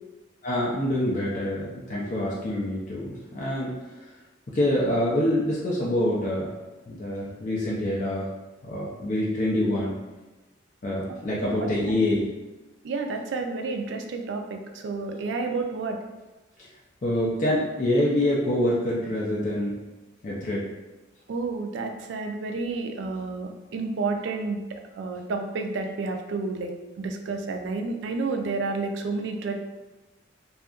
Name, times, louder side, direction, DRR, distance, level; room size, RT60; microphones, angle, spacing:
voice 1, 0.4-3.7 4.5-6.5 6.9-8.3 8.6-10.0 10.8-12.3 17.0-19.7 20.2-20.6, left 1 dB, 40° left, -6 dB, 0.4 m, -26 dB
voice 2, 11.3-11.7 12.8-16.0 21.3-24.6 25.0-26.7 27.0-29.6, right 3 dB, 75° right, 4 dB, 0.3 m, -30 dB
2.7 x 2.4 x 2.3 m, 1.2 s
head